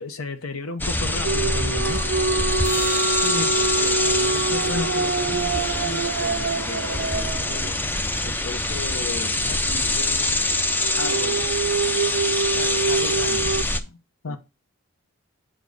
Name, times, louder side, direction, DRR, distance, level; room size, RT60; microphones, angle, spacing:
voice 1, 0.0-2.0 14.2-14.4, left 3 dB, 85° left, 1.0 m, -32 dB
sound 1, 0.8-13.8, left 2 dB, 10° left, 0.4 m, -25 dB
sound 2, 1.2-8.2 10.8-13.6, right 4 dB, 55° right, 0.4 m, -26 dB
sound 3, 2.6-7.1 13.7-13.8, left 2 dB, 40° left, 2.1 m, -36 dB
voice 2, 3.2-7.8 8.2-10.4 11.0-11.6 12.5-14.0 14.2-14.4, left 3 dB, 65° left, 0.9 m, -35 dB
7.5 x 5.2 x 3.9 m
head